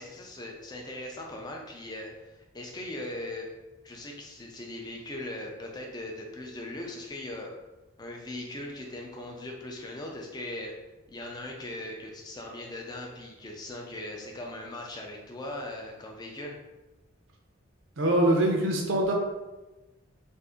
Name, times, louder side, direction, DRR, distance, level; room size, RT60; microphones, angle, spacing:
voice 1, 0.0-3.5 3.8-7.5 8.0-10.7 11.1-16.6, left 1 dB, 20° left, 0 dB, 0.4 m, -39 dB
voice 2, 18.0-19.1, right 1 dB, 70° right, 1 dB, 0.6 m, -23 dB
2.6 x 2.4 x 3.6 m, 1.1 s
head